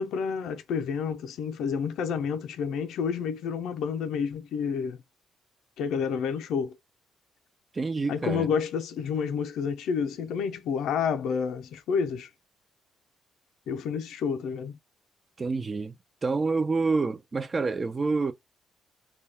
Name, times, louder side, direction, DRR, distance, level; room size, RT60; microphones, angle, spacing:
voice 1, 0.0-5.0 5.8-6.8 8.1-12.3 13.7-14.8, left 6 dB, 80° left, 0.4 m, -29 dB
voice 2, 7.7-8.5 15.4-15.9 16.2-18.3, right 4 dB, 30° right, 0.4 m, -27 dB
2.3 x 2.2 x 3.3 m
cardioid pair, 90°, 0 cm